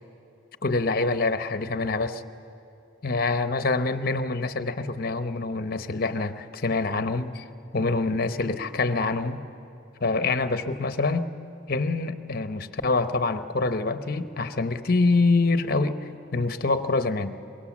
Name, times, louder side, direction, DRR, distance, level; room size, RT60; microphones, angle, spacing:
voice 1, 0.6-2.2 3.0-7.4 7.7-9.4 10.0-11.3 11.7-17.4, left 3 dB, 50° left, 10 dB, 0.8 m, -25 dB
24.0 x 22.5 x 7.3 m, 2.6 s
head